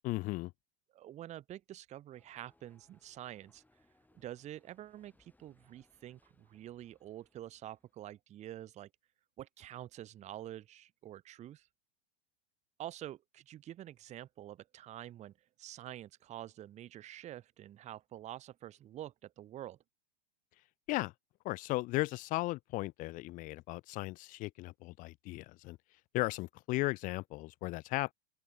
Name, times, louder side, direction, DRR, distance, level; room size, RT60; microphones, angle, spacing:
voice 1, 0.0-0.5 20.9-21.1 21.4-25.8 26.1-28.1, left 20 dB, 25° left, 0.4 m, -36 dB
voice 2, 0.9-3.6 4.1-8.9 9.4-11.7 12.8-15.3 15.6-19.8, right 12 dB, 20° right, 0.7 m, -47 dB
sound 1, 2.1-8.1, left 2 dB, 5° left, 7.3 m, -72 dB
open air
hypercardioid pair, 105°, 31 cm